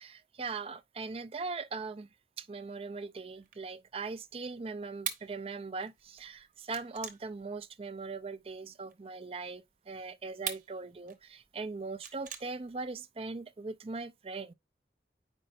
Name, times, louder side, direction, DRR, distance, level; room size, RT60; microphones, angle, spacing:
voice 1, 0.0-2.1 2.4-14.5, right 4 dB, 35° right, 0.4 m, -40 dB
sound 1, 3.4-8.9 9.5-13.0, right 8 dB, 50° right, 1.0 m, -44 dB
8.7 x 5.3 x 2.5 m
head